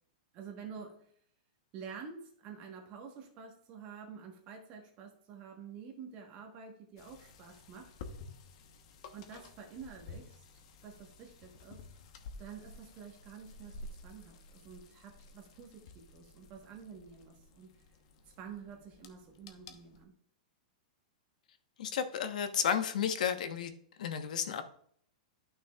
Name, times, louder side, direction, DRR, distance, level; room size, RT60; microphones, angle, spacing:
voice 1, 0.3-1.1 1.7-7.9 9.1-11.9 12.4-17.8 18.4-20.1, right 6 dB, 30° right, 2 dB, 1.2 m, -49 dB
sound 1, 7.0-20.1, left 3 dB, 45° left, 1.0 m, -52 dB
voice 2, 21.8-23.7 24.0-24.6, left 8 dB, 70° left, 9 dB, 1.0 m, -32 dB
11.5 x 6.2 x 2.3 m, 0.62 s
supercardioid pair, 165°, 4 cm